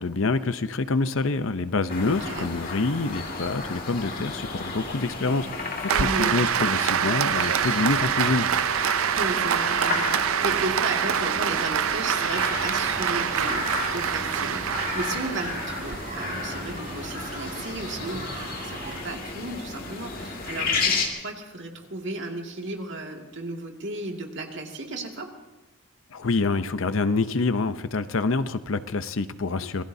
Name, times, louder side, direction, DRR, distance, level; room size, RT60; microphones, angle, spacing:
voice 1, 0.0-8.5 26.1-29.8, left 3 dB, 65° left, 12 dB, 0.7 m, -26 dB
sound 1, 1.9-21.1, left 4 dB, 45° left, 2.1 m, -33 dB
voice 2, 2.1-2.5 5.9-6.4 9.0-25.3, right 2 dB, 55° right, 1 dB, 2.2 m, -34 dB
Applause, 5.9-16.0, right 8 dB, 75° right, 0.5 m, -25 dB
sound 2, 11.8-19.0, right 2 dB, 40° right, 4.6 m, -39 dB
26.5 x 19.5 x 2.8 m, 1.1 s
head